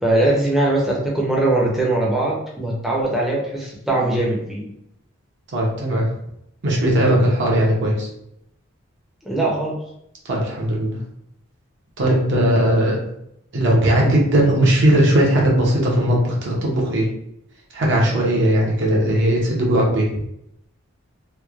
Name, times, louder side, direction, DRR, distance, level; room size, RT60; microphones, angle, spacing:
voice 1, 0.0-4.7 9.2-9.8, right 2 dB, ahead, -5 dB, 0.5 m, -21 dB
voice 2, 5.5-6.1 6.6-8.1 10.3-11.0 12.0-13.0 13.5-17.1 17.7-20.1, right 1 dB, 55° right, -2 dB, 0.6 m, -18 dB
3.0 x 2.0 x 2.3 m, 0.77 s
head